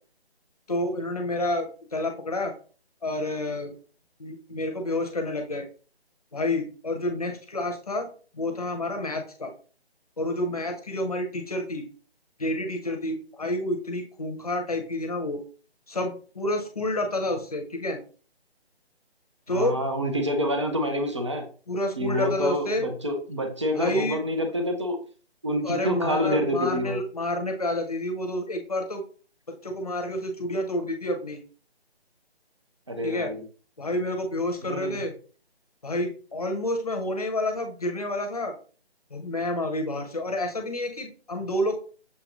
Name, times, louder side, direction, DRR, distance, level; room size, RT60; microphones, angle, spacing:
voice 1, 0.7-2.5 3.0-3.7 4.2-5.7 6.3-8.1 8.3-9.5 10.2-11.8 12.4-15.4 15.9-18.0 19.5-19.8 21.7-22.9 23.7-24.2 25.6-29.0 29.5-31.4 33.0-33.3 33.8-35.1 35.8-38.5 39.1-41.8, left 1 dB, 35° left, 4 dB, 0.8 m, -29 dB
voice 2, 19.5-21.5 22.0-25.0 25.4-27.0 32.9-33.4 34.6-35.0, equal, 30° right, 4 dB, 0.5 m, -27 dB
6.7 x 2.6 x 3.0 m, 0.39 s
figure-of-eight pair, 170°, 32 cm